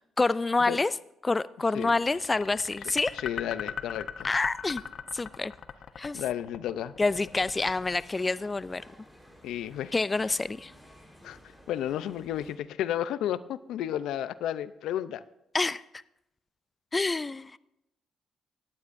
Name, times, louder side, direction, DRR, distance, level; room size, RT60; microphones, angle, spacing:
voice 1, 0.2-0.9 1.2-3.2 4.2-4.8 5.1-5.5 6.0-6.2 7.0-8.8 9.9-10.7 15.5-15.8 16.9-17.6, left 3 dB, 25° left, 17 dB, 0.3 m, -27 dB
sound 1, 1.8-8.9, left 7 dB, 60° left, 0.8 m, -39 dB
voice 2, 3.1-4.3 6.1-6.9 9.4-9.9 11.2-11.4 11.7-15.2, left 11 dB, 85° left, 15 dB, 0.5 m, -32 dB
sound 2, 7.0-12.6, equal, ahead, 4.0 m, -54 dB
19.0 x 14.5 x 2.6 m, 0.86 s
cardioid pair, 90°, 0 cm